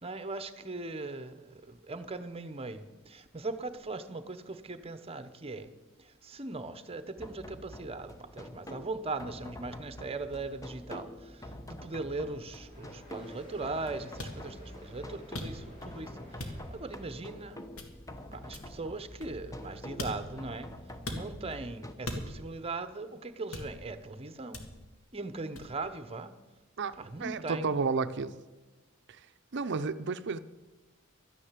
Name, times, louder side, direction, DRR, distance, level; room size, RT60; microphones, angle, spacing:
voice 1, 0.0-5.7 6.0-17.6 18.3-20.7 21.1-24.6 25.1-26.3 27.0-27.8, right 3 dB, 30° right, 11 dB, 0.9 m, -39 dB
sound 1, 7.2-21.9, left 1 dB, 15° left, 0.9 m, -46 dB
sound 2, 12.6-17.7, left 1 dB, 40° left, 2.5 m, -54 dB
sound 3, 14.2-14.4 15.3-15.8 16.4-16.8 17.8-18.1 18.5-19.6 20.0-20.4 21.1-21.3 22.0-22.6 23.5-24.0 24.5-24.9 25.6-25.8, left 1 dB, 85° left, 2.0 m, -40 dB
voice 2, 26.8-28.4 29.1-29.2 29.5-30.4, right 4 dB, 55° right, 12 dB, 0.6 m, -32 dB
12.5 x 10.0 x 7.4 m, 1.2 s
head